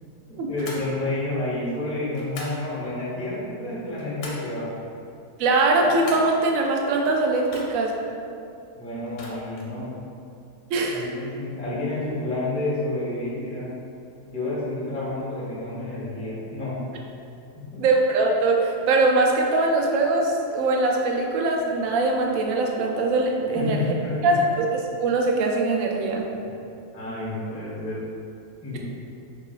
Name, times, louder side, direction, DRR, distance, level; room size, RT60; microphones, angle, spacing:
voice 1, 0.3-4.7 8.7-9.9 10.9-13.7 14.2-16.8 17.7-17.8 23.5-24.1 26.9-27.9 28.6-28.8, left 2 dB, 5° left, -10 dB, 0.7 m, -30 dB
Tapedeck open and closing, 0.6-0.9 2.1-2.6 3.7-4.5 5.6-6.4 7.4-8.0 9.1-9.7, left 2 dB, 85° left, 1.3 m, -41 dB
voice 2, 5.4-7.9 10.7-11.1 17.8-23.8 24.2-24.7 25.0-26.3, right 2 dB, 70° right, 0 dB, 0.9 m, -22 dB
4.9 x 2.9 x 2.4 m, 2.6 s
omnidirectional pair, 1.7 m